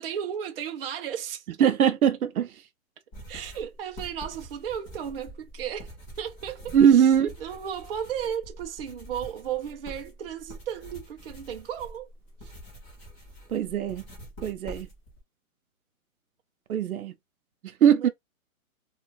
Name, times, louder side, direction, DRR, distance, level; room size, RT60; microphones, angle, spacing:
voice 1, 0.0-1.7 3.3-5.9 6.2-7.1 7.4-12.1 12.4-12.5 17.9-18.1, right 9 dB, 45° right, 0.5 m, -34 dB
voice 2, 1.6-2.5 6.7-7.3 13.5-14.0 14.4-14.9 16.7-17.1 17.8-18.1, right 8 dB, 85° right, 0.7 m, -21 dB
sound 1, 3.1-15.2, right 1 dB, 15° left, 0.8 m, -45 dB
2.5 x 2.4 x 3.1 m
hypercardioid pair, 155°, 42 cm